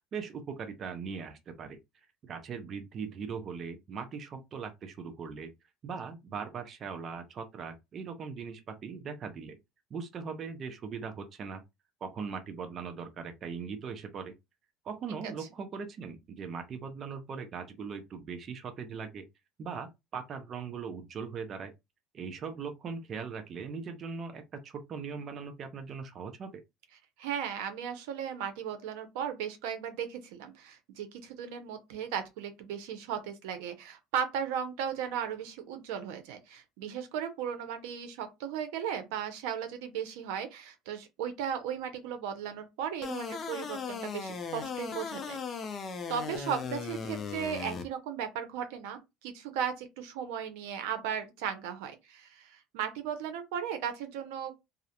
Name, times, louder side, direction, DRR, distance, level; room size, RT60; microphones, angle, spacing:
voice 1, 0.1-1.8 2.2-5.5 5.8-9.6 9.9-11.6 12.0-14.3 14.8-19.3 19.6-21.7 22.1-26.6, right 5 dB, 35° right, 0.4 m, -40 dB
voice 2, 27.2-45.4 45.7-45.8 46.1-54.5, right 8 dB, 85° right, 0.6 m, -36 dB
sound 1, 43.0-47.8, left 5 dB, 30° left, 0.4 m, -37 dB
2.4 x 2.0 x 2.7 m
cardioid pair, 145°, 0 cm